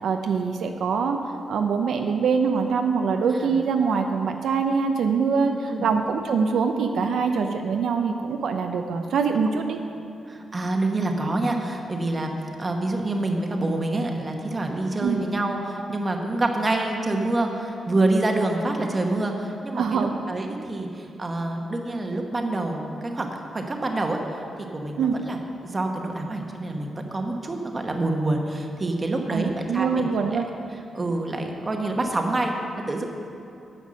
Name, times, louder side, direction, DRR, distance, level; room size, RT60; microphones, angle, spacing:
voice 1, 0.0-1.2 1.5-9.8 15.0-15.2 19.8-20.1 25.0-25.2 29.3-30.5, right 5 dB, 75° right, 5 dB, 0.6 m, -24 dB
voice 2, 5.4-5.8 10.3-12.3 12.6-30.1 30.9-33.0, right 2 dB, 25° right, 3 dB, 1.0 m, -27 dB
9.6 x 8.1 x 6.3 m, 2.7 s
wide cardioid pair, 150°, 0 cm